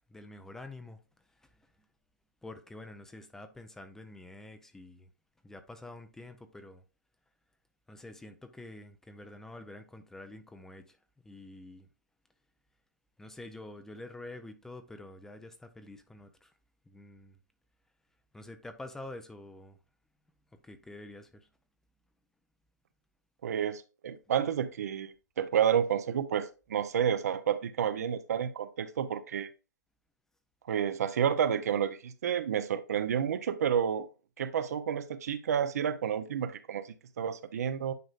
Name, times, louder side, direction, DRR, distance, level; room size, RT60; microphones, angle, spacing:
voice 1, 0.1-1.0 1.4-1.7 2.4-5.1 5.4-6.8 7.9-11.0 11.2-11.9 13.2-16.5 16.9-17.4 18.3-19.8 20.6-21.5, left 2 dB, 5° left, 0.6 m, -47 dB
voice 2, 23.4-29.5 30.7-34.1 34.4-37.9, right 8 dB, 55° right, 0.7 m, -30 dB
9.4 x 5.0 x 2.5 m
hypercardioid pair, 130°, 10 cm